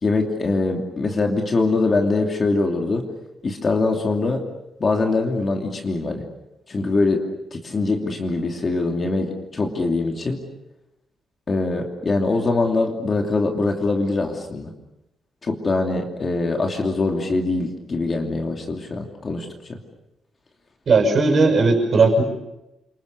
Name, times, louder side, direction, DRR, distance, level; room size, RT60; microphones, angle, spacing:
voice 1, 0.0-3.1 3.4-4.4 4.8-6.2 6.7-7.2 7.5-10.4 11.5-14.7 15.4-19.8, left 3 dB, 30° left, 2 dB, 2.8 m, -23 dB
voice 2, 20.9-22.2, right 3 dB, 40° right, 4 dB, 6.3 m, -16 dB
29.5 x 26.0 x 6.8 m, 0.92 s
wide cardioid pair, 165°, 0 cm